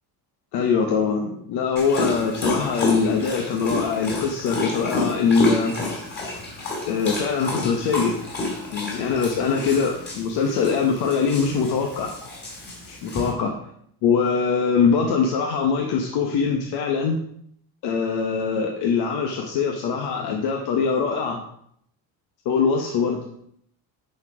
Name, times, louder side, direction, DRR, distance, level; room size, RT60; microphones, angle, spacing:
voice 1, 0.5-6.0 6.9-8.1 8.7-12.1 12.9-13.5 14.0-17.2 17.8-21.4 22.4-23.2, left 5 dB, 85° left, 2 dB, 1.2 m, -23 dB
Dog, 1.8-13.3, left 2 dB, 25° left, 3.2 m, -29 dB
10.5 x 4.6 x 4.9 m, 0.69 s
cardioid pair, 145°, 38 cm